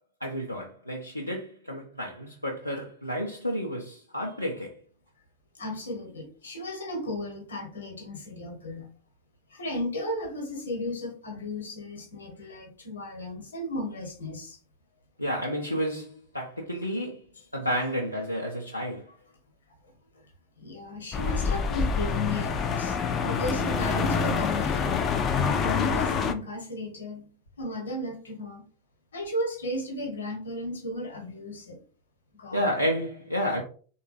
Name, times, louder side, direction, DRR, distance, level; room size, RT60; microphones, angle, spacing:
voice 1, 0.2-4.8 15.2-17.2 17.5-19.1 32.5-33.6, equal, 90° left, 0.5 m, -31 dB
voice 2, 5.5-8.9 9.5-14.6 20.6-27.3 27.6-28.6 29.1-31.8 32.3-32.6, left 1 dB, 70° left, 1.0 m, -35 dB
sound 1, 21.1-26.3, left 6 dB, 30° left, 0.4 m, -26 dB
3.5 x 2.2 x 3.1 m
figure-of-eight pair, 90°, 0 cm